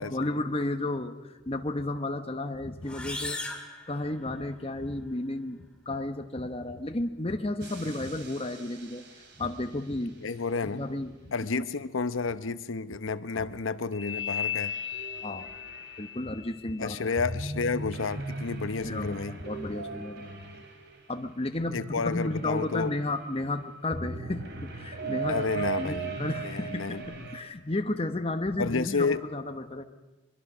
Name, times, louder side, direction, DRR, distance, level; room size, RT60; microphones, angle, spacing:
voice 1, 0.0-3.4 3.9-9.0 9.4-10.2 10.7-11.7 13.3-13.5 15.2-15.5 16.0-17.0 18.8-20.6 21.1-29.8, left 2 dB, 30° left, 6 dB, 1.1 m, -33 dB
sound 1, 2.8-4.7, left 2 dB, 5° left, 1.9 m, -38 dB
sound 2, 7.6-9.5 13.9-21.2 21.7-23.3 23.9-27.4, equal, 55° right, 2.7 m, -37 dB
voice 2, 10.2-10.8 11.3-14.7 16.8-19.3 21.7-22.9 25.3-27.3 28.6-29.2, left 4 dB, 75° left, 13 dB, 0.8 m, -31 dB
23.5 x 23.0 x 6.2 m, 1.1 s
head